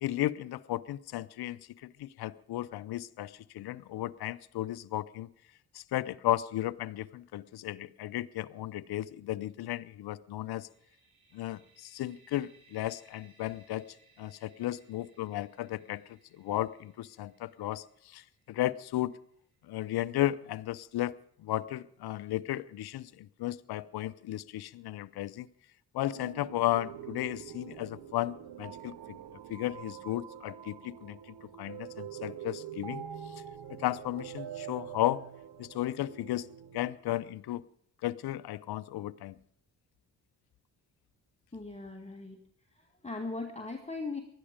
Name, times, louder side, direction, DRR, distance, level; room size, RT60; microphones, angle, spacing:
voice 1, 0.0-5.3 5.7-10.7 11.3-13.9 14.2-19.2 19.7-25.5 25.9-28.9 29.5-31.2 31.6-33.0 33.7-35.2 35.6-36.5 36.7-37.6 38.0-39.4, left 14 dB, 50° left, 0.7 m, -34 dB
sound 1, 10.6-20.3, right 4 dB, 75° right, 3.8 m, -66 dB
sound 2, 26.1-36.9, right 9 dB, 55° right, 1.3 m, -45 dB
voice 2, 41.5-42.4 42.7-44.2, left 3 dB, 15° left, 1.9 m, -39 dB
19.5 x 12.5 x 5.1 m
hypercardioid pair, 40°, 47 cm